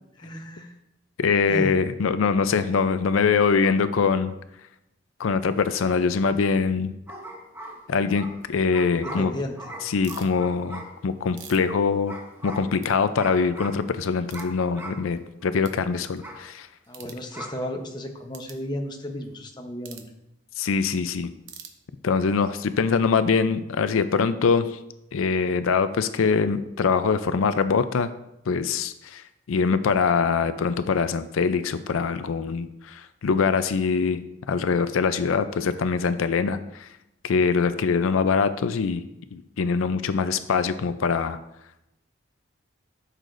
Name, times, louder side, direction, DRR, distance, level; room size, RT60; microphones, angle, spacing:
voice 1, 0.2-0.8 1.5-1.7 8.9-9.6 16.9-20.1, left 1 dB, 20° left, 3 dB, 0.8 m, -34 dB
voice 2, 1.2-4.3 5.2-6.9 7.9-9.3 9.8-12.2 12.4-16.7 20.6-21.3 22.0-24.8 25.1-28.1 28.5-36.9 37.2-39.0 39.3-41.4, left 5 dB, 90° left, 12 dB, 0.4 m, -23 dB
sound 1, 7.1-11.3 12.1-12.8 13.2-13.9 14.3-15.1 15.4-15.5 16.2-16.5 17.3-17.7, right 1 dB, 10° right, 0.9 m, -40 dB
sound 2, 10.0-10.3 11.0-12.5 12.8-12.9 13.4-13.5 14.3-14.5 15.1-15.2 15.6-15.8 16.9-17.2 18.3-18.6 19.8-20.1 21.4-22.2, right 8 dB, 65° right, 0.9 m, -45 dB
13.0 x 6.6 x 2.6 m, 0.86 s
head